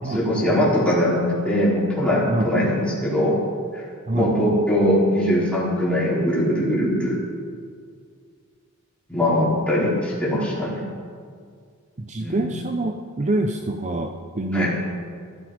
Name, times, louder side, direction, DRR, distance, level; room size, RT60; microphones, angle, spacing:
voice 1, 0.0-3.4 3.7-3.8 4.1-7.2 9.1-10.8 12.2-12.5 14.5-14.7, equal, 5° left, -8 dB, 4.5 m, -21 dB
voice 2, 12.0-14.7, right 2 dB, 30° right, 5 dB, 0.7 m, -25 dB
16.0 x 13.5 x 5.1 m, 2.1 s
head